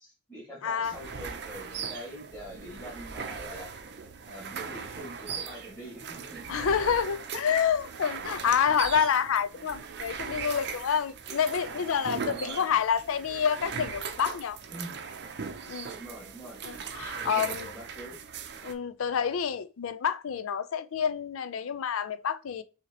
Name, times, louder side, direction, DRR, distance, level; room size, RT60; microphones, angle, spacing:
voice 1, 0.0-3.7 4.3-6.6 12.2-12.7 14.7-15.0 15.8-16.6 17.1-18.2, right 1 dB, 10° left, 1.7 m, -44 dB
voice 2, 0.6-0.9 6.5-14.6 15.7-15.9 16.6-17.7 18.6-22.6, left 7 dB, 85° left, 0.4 m, -28 dB
sound 1, 0.8-18.7, right 6 dB, 55° right, 0.5 m, -39 dB
5.8 x 2.8 x 2.9 m
head